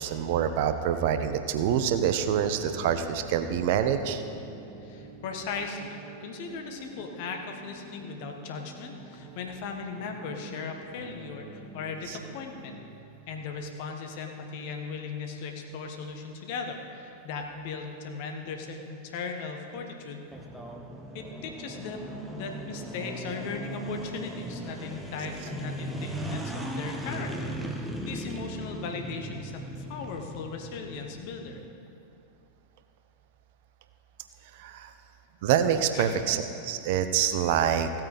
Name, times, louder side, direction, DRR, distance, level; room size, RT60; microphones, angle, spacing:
voice 1, 0.0-4.2 12.1-12.2 34.6-34.9 35.4-38.0, right 9 dB, 50° right, 9 dB, 0.6 m, -26 dB
sound 1, 2.3-13.0, right 2 dB, 35° right, 1.3 m, -47 dB
voice 2, 4.8-12.7 13.3-20.2 21.1-31.6 35.9-36.2, left 4 dB, 50° left, 4 dB, 1.3 m, -38 dB
sound 2, 20.3-31.7, right 1 dB, 5° right, 1.0 m, -38 dB
15.5 x 8.8 x 4.1 m, 2.7 s
figure-of-eight pair, 90°, 0 cm